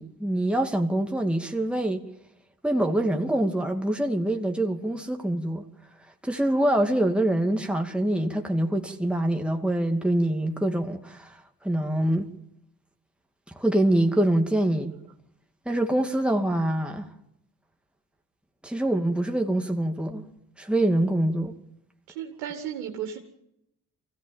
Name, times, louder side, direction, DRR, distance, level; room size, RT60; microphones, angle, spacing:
voice 1, 0.0-2.0 2.6-5.6 6.2-11.4 11.6-12.3 13.5-14.9 15.7-17.1 18.6-20.2 20.6-21.5, right 1 dB, ahead, 2.5 m, -25 dB
voice 2, 22.2-23.2, right 9 dB, 80° right, 2.1 m, -34 dB
23.5 x 16.5 x 7.5 m
hypercardioid pair, 45°, 42 cm